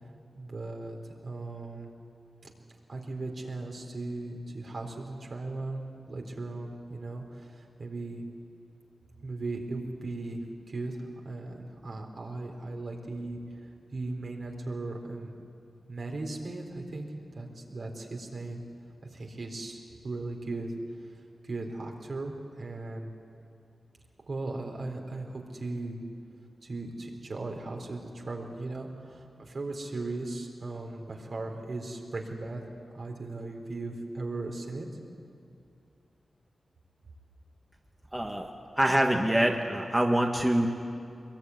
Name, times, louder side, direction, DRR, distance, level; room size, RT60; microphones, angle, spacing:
voice 1, 0.3-1.9 2.9-8.2 9.2-10.4 10.7-15.3 15.9-18.6 19.0-20.7 21.1-23.1 24.3-26.0 26.6-32.6 32.9-34.9, right 2 dB, 60° right, 2 dB, 4.1 m, -37 dB
voice 2, 38.1-38.5 38.8-40.7, right 1 dB, 10° right, 1 dB, 1.8 m, -25 dB
24.0 x 22.0 x 9.7 m, 2.5 s
wide cardioid pair, 90°, 0 cm